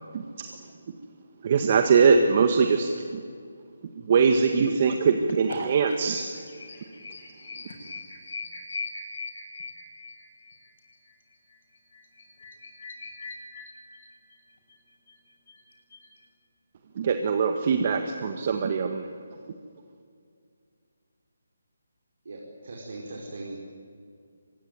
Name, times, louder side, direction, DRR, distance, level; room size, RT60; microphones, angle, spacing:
voice 1, 0.1-0.7 1.4-3.2 4.0-6.3 17.0-19.1, right 5 dB, 40° right, 6 dB, 1.7 m, -22 dB
voice 2, 6.6-14.4 14.7-14.8 15.1-15.2 15.5-15.6 15.9-16.1, left 4 dB, 55° left, 2 dB, 7.8 m, -42 dB
voice 3, 22.2-23.6, right 2 dB, 65° right, -1 dB, 4.9 m, -39 dB
24.5 x 22.0 x 9.4 m, 2.3 s
figure-of-eight pair, 155°, 0 cm